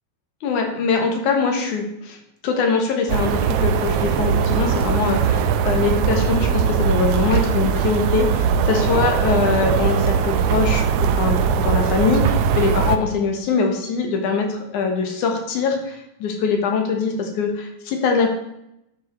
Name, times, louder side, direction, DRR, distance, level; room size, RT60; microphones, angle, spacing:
voice 1, 0.4-2.2 2.4-18.3, left 5 dB, 90° left, 3 dB, 2.9 m, -22 dB
sound 1, 3.1-13.0, right 7 dB, 75° right, 1.5 m, -20 dB
12.0 x 5.3 x 4.5 m, 0.83 s
omnidirectional pair, 3.4 m